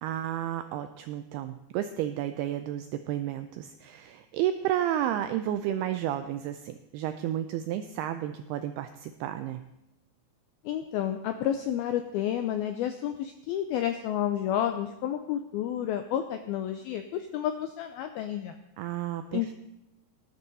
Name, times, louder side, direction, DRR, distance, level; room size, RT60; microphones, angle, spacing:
voice 1, 0.0-9.6 18.8-19.4, right 11 dB, 85° right, 9 dB, 2.3 m, -32 dB
voice 2, 10.6-18.5 19.3-19.5, left 10 dB, 90° left, 7 dB, 2.1 m, -30 dB
18.5 x 11.5 x 4.1 m, 0.88 s
omnidirectional pair, 5.2 m